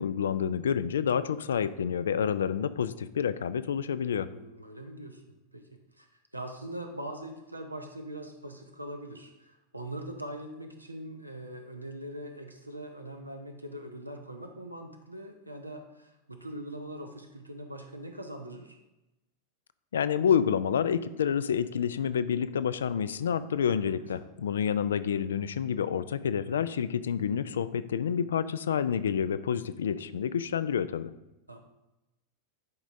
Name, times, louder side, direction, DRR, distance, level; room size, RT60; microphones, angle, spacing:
voice 1, 0.0-4.3 19.9-31.1, left 8 dB, 65° left, 14 dB, 0.3 m, -28 dB
voice 2, 4.3-5.2 5.5-6.1 6.3-18.8 23.8-24.2 31.5-31.6, right 1 dB, 85° right, 4 dB, 0.8 m, -42 dB
10.5 x 5.0 x 2.6 m, 0.95 s
figure-of-eight pair, 90°, 0 cm